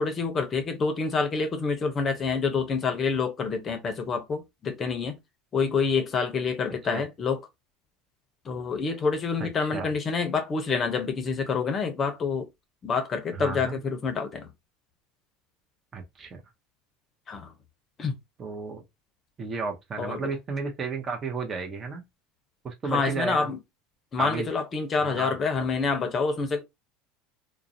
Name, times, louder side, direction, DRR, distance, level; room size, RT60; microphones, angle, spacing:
voice 1, 0.0-5.2 5.5-7.4 8.5-12.5 12.8-14.5 17.3-17.5 18.0-18.1 20.0-20.2 22.9-23.6 24.1-26.6, left 4 dB, 35° left, 0.6 m, -27 dB
voice 2, 9.4-9.9 13.3-13.8 15.9-16.4 18.4-18.8 19.4-22.0 22.6-23.5 24.2-24.5 25.0-25.3, right 4 dB, 30° right, 0.7 m, -33 dB
2.4 x 2.0 x 2.6 m
hypercardioid pair, 80°, 0 cm